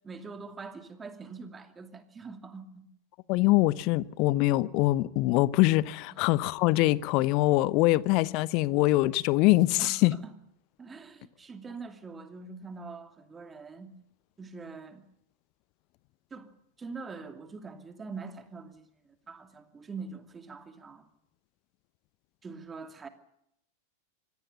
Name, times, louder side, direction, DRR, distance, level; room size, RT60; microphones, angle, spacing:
voice 1, 0.0-2.9 6.1-6.2 9.8-10.0 10.2-10.3 10.8-13.9 14.4-15.0 16.3-16.5 16.8-18.9 19.3-21.1 22.4-23.1, right 4 dB, 15° right, 2.5 m, -43 dB
voice 2, 3.3-10.1, left 18 dB, 40° left, 0.8 m, -24 dB
25.0 x 18.0 x 7.0 m
figure-of-eight pair, 90°, 0 cm